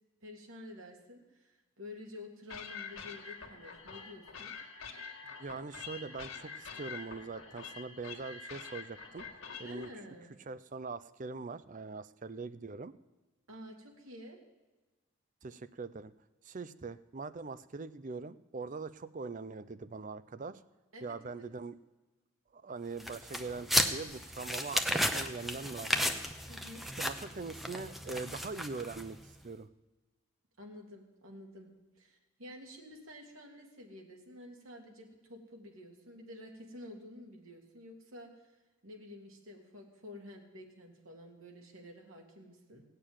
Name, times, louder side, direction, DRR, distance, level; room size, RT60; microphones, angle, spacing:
voice 1, 0.2-4.5 9.6-10.4 13.5-14.4 20.9-21.4 26.5-26.8 30.6-38.5 38.8-42.8, left 1 dB, 75° right, 1 dB, 2.7 m, -50 dB
sound 1, 2.5-9.9, left 5 dB, 75° left, 1.7 m, -46 dB
voice 2, 5.4-9.3 9.6-9.9 10.5-12.9 15.4-16.1 16.4-20.6 21.0-21.7 22.5-26.1 27.0-29.7, right 4 dB, 40° right, 15 dB, 0.5 m, -42 dB
sound 2, 23.0-29.2, equal, ahead, 0.7 m, -34 dB
17.0 x 6.7 x 9.0 m, 1.2 s
head